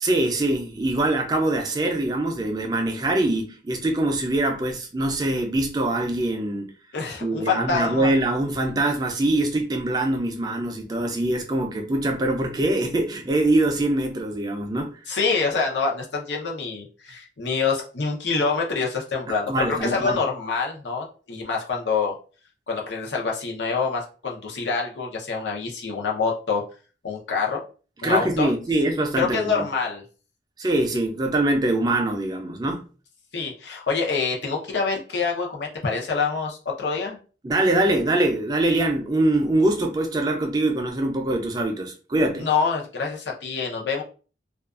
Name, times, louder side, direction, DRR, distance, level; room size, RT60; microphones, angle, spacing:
voice 1, 0.0-6.7 7.2-15.0 19.5-20.2 28.0-29.7 30.6-32.8 37.4-42.5, right 2 dB, 25° right, 0.3 m, -23 dB
voice 2, 6.9-8.1 15.1-22.1 22.7-26.6 27.0-27.6 28.0-28.5 29.2-30.0 33.3-37.2 42.4-44.0, left 5 dB, 90° left, 0.7 m, -26 dB
2.4 x 2.2 x 2.3 m
head